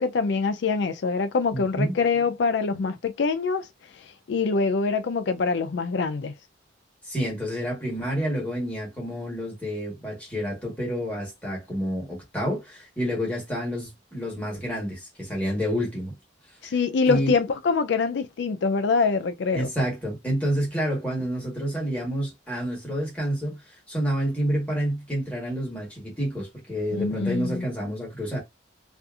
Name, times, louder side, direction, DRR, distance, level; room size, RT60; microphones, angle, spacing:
voice 1, 0.0-3.7 4.3-6.3 16.6-19.7 26.9-27.7, left 4 dB, 65° left, 0.4 m, -24 dB
voice 2, 1.5-1.9 7.0-16.1 16.6-16.7 17.1-17.3 19.5-28.4, equal, 5° left, 1.2 m, -29 dB
2.7 x 2.5 x 2.3 m
head